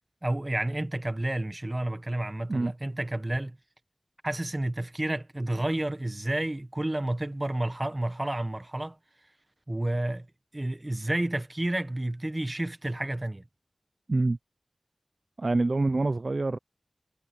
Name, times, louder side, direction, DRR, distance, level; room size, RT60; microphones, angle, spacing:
voice 1, 0.2-3.6 4.2-9.0 9.7-10.3 10.5-13.4, right 1 dB, 30° right, 1.3 m, -30 dB
voice 2, 15.4-16.6, right 2 dB, 60° right, 0.6 m, -26 dB
wide cardioid pair, 50°, 0 cm